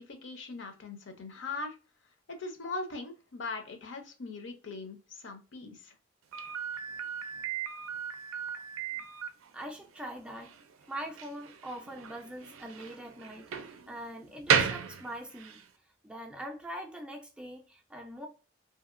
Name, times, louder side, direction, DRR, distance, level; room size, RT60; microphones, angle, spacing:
voice 1, 0.0-1.7 2.3-5.9, left 3 dB, 60° left, 0.6 m, -40 dB
Slam, 6.3-15.7, right 7 dB, 85° right, 0.4 m, -35 dB
voice 2, 9.5-10.6 10.9-15.6 16.0-18.3, right 1 dB, 5° right, 0.4 m, -42 dB
2.7 x 2.7 x 2.4 m
head